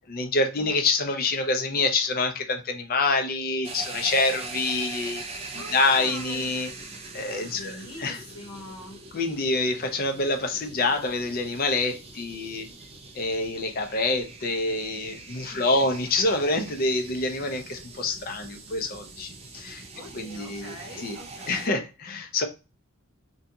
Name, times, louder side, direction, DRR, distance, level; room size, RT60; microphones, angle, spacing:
voice 1, 0.1-5.2 5.5-6.7 7.1-8.2 9.1-12.7 13.2-19.8 20.1-21.2 21.5-22.4, left 3 dB, 45° left, 0.5 m, -26 dB
sound 1, 3.6-21.7, right 3 dB, 30° right, 0.3 m, -42 dB
voice 2, 5.5-6.5 7.5-9.0 15.5-15.8 19.9-21.7, equal, 75° left, 1.0 m, -43 dB
2.6 x 2.3 x 2.6 m
head